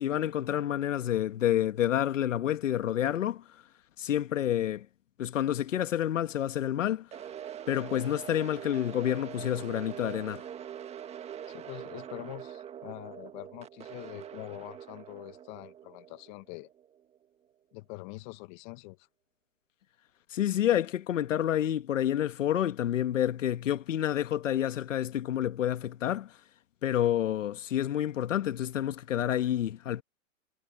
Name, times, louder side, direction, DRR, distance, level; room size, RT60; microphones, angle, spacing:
voice 1, 0.0-3.6 4.0-4.9 5.2-7.1 7.7-10.4 20.3-26.4 26.8-30.0, left 11 dB, 70° left, 1.4 m, -29 dB
sound 1, 7.1-17.2, right 10 dB, 15° right, 1.7 m, -44 dB
voice 2, 11.5-16.7 17.7-19.1, left 25 dB, 35° left, 1.5 m, -44 dB
hypercardioid pair, 135°, 40 cm